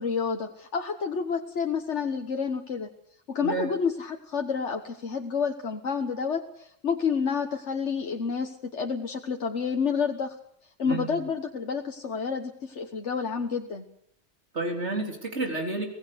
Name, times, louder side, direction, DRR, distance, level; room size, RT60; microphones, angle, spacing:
voice 1, 0.0-2.9 3.3-10.3 10.8-13.8, left 6 dB, 90° left, 3 dB, 1.7 m, -29 dB
voice 2, 3.4-3.7 10.8-11.2 14.5-15.9, right 3 dB, 85° right, 2 dB, 4.1 m, -30 dB
24.5 x 18.0 x 6.9 m, 0.71 s
omnidirectional pair, 1.1 m